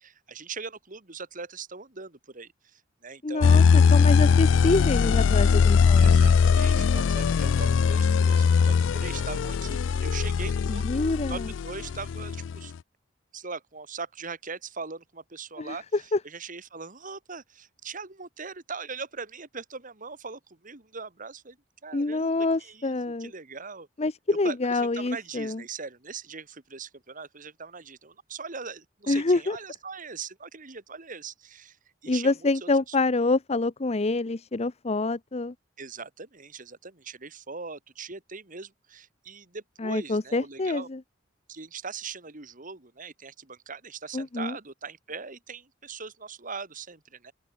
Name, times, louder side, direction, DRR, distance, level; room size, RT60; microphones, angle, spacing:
voice 1, 0.0-3.6 6.0-11.0 11.3-12.7 13.3-21.6 21.8-23.9 24.4-31.8 32.0-33.0 35.8-40.9 41.5-47.3, right 5 dB, 45° right, 2.5 m, -40 dB
voice 2, 3.2-6.2 10.7-11.5 15.6-16.2 21.9-23.3 24.0-25.6 29.1-29.6 32.1-35.5 39.8-41.0 44.1-44.6, left 3 dB, 35° left, 0.7 m, -26 dB
sound 1, 3.4-12.6, left 6 dB, 80° left, 0.4 m, -21 dB
open air
head